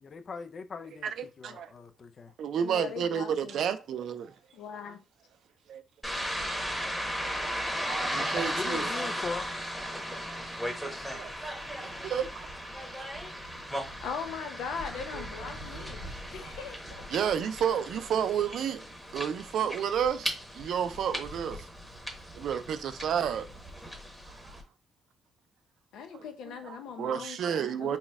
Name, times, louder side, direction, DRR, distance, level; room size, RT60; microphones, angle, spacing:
voice 1, 0.0-2.3 8.5-9.5, left 4 dB, 45° left, 0.4 m, -40 dB
voice 2, 1.0-1.7 2.4-4.3 5.7-5.8 7.2-8.9 11.1-11.3 11.7-12.5 12.9-13.1 15.1-15.9 16.4-16.5 17.1-18.8 19.1-21.7 22.3-23.5 24.3-24.6 26.5-28.0, right 8 dB, 70° right, 0.4 m, -31 dB
voice 3, 2.6-3.7 4.5-5.0 14.0-17.0 25.9-28.0, left 6 dB, 85° left, 0.7 m, -40 dB
sound 1, 6.0-24.6, equal, 5° left, 1.2 m, -36 dB
4.2 x 2.2 x 3.4 m
cardioid pair, 90°, 0 cm